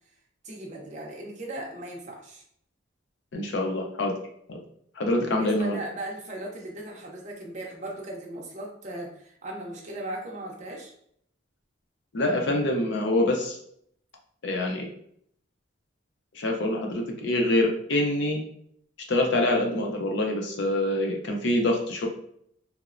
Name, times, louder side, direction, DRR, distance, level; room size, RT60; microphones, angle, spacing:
voice 1, 0.4-2.4 5.2-10.9, right 1 dB, 35° right, -1 dB, 0.5 m, -37 dB
voice 2, 3.3-4.2 4.5-4.6 5.0-5.8 12.1-13.6 14.4-14.9 16.3-18.4 19.1-22.1, left 1 dB, 65° left, 2 dB, 0.5 m, -25 dB
2.9 x 2.0 x 2.4 m, 0.68 s
head